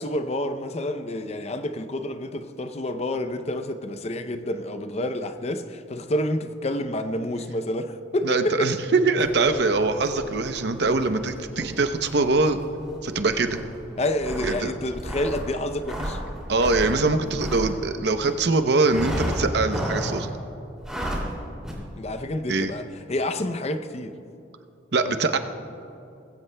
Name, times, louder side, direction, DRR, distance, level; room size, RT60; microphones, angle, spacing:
voice 1, 0.0-8.7 14.0-16.2 22.0-24.1, left 1 dB, 35° left, 0.6 m, -29 dB
voice 2, 8.2-12.6 13.0-13.6 14.4-14.7 16.5-20.3 22.5-22.7 24.9-25.4, right 3 dB, 60° right, 0.7 m, -23 dB
sound 1, 9.2-18.4 18.9-20.3 20.8-21.3 21.6-21.7, equal, 5° right, 2.6 m, -34 dB
20.5 x 16.0 x 2.2 m
head